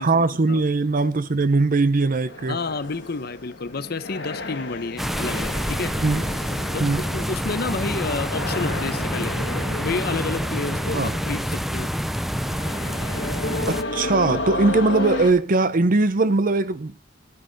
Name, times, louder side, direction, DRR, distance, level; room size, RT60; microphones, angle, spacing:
voice 1, 0.0-2.6 6.0-6.2 6.8-7.0 10.9-11.1 13.7-17.0, right 3 dB, 50° right, 0.7 m, -20 dB
sound 1, 2.2-15.3, left 2 dB, 75° left, 1.8 m, -33 dB
voice 2, 2.5-5.9 6.7-9.3 9.8-11.9, left 3 dB, 60° left, 0.8 m, -30 dB
sound 2, 5.0-13.8, equal, ahead, 0.5 m, -27 dB
11.0 x 9.7 x 4.0 m
head